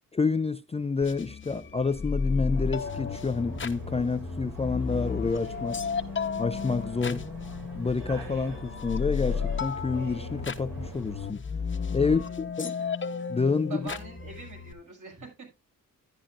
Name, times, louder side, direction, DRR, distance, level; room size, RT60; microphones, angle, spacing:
voice 1, 0.1-5.8 6.4-7.2 7.8-11.4 11.9-12.7 13.3-13.8, left 4 dB, 20° left, 0.4 m, -28 dB
sound 1, 1.0-14.7, left 5 dB, 35° left, 1.0 m, -33 dB
sound 2, 2.5-11.3, equal, 90° right, 3.9 m, -43 dB
voice 2, 12.0-12.4 12.8-12.9 13.7-15.5, right 5 dB, 60° right, 6.3 m, -44 dB
11.5 x 10.0 x 2.5 m
cardioid pair, 95°, 34 cm